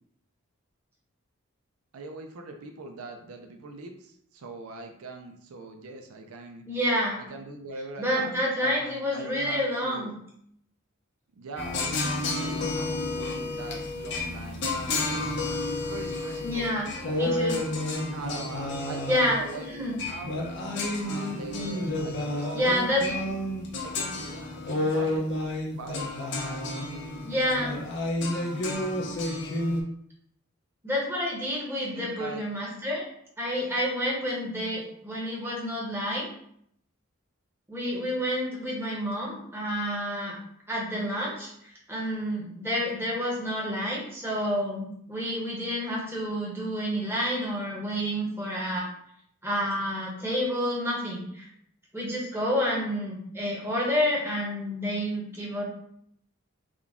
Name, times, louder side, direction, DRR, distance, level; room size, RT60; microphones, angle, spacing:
voice 1, 1.9-6.6 7.2-10.1 11.3-15.4 15.7-17.5 18.1-20.4 21.1-23.4 23.8-25.3 25.7-29.1 31.9-32.4, right 3 dB, 90° right, 5 dB, 0.5 m, -42 dB
voice 2, 6.7-7.2 8.0-10.1 16.4-16.9 17.2-17.6 19.1-20.0 22.5-23.1 27.2-27.7 30.8-33.0 33.4-36.3 37.7-40.4 40.7-41.5 41.9-48.9 49.4-51.5 51.9-55.6, equal, 10° right, -4 dB, 1.0 m, -29 dB
sound 1, 11.6-29.8, left 2 dB, 55° left, 0.6 m, -30 dB
3.7 x 2.3 x 3.6 m, 0.69 s
head